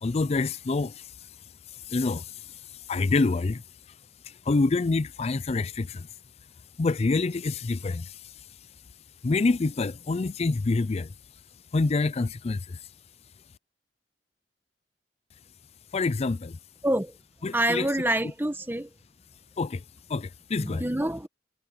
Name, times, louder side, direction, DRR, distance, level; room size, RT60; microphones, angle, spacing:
voice 1, 0.0-1.1 1.9-2.6 2.9-3.6 4.3-6.1 6.8-8.2 9.2-11.1 11.7-12.8 15.9-16.6 17.4-17.9 19.6-19.8 20.1-20.8, left 3 dB, 35° left, 0.4 m, -26 dB
voice 2, 16.8-17.2 17.5-18.9 20.6-21.3, right 1 dB, 10° right, 1.5 m, -27 dB
head